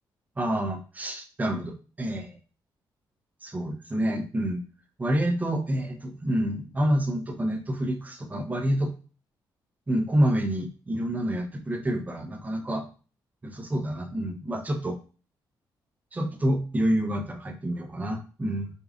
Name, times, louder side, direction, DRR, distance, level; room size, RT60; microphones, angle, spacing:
voice 1, 0.4-2.4 3.4-4.6 5.0-8.9 9.9-12.8 13.4-15.0 16.1-18.7, right 1 dB, 20° right, 5 dB, 0.6 m, -28 dB
5.2 x 2.4 x 2.4 m, 0.37 s
cardioid pair, 105°, 8 cm